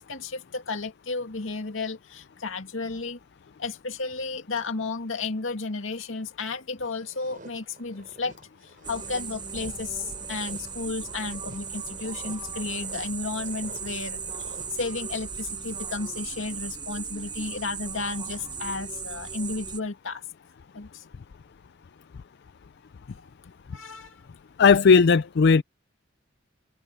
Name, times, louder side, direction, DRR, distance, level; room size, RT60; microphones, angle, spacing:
voice 1, 0.0-3.2 3.6-8.3 8.9-14.2 14.5-20.2 20.7-21.0 23.7-24.2, left 3 dB, 90° left, 2.2 m, -33 dB
sound 1, 6.8-15.4, right 2 dB, 45° right, 6.4 m, -49 dB
sound 2, 8.8-19.8, right 6 dB, 25° right, 7.1 m, -37 dB
voice 2, 24.6-25.6, left 5 dB, 60° left, 0.4 m, -16 dB
head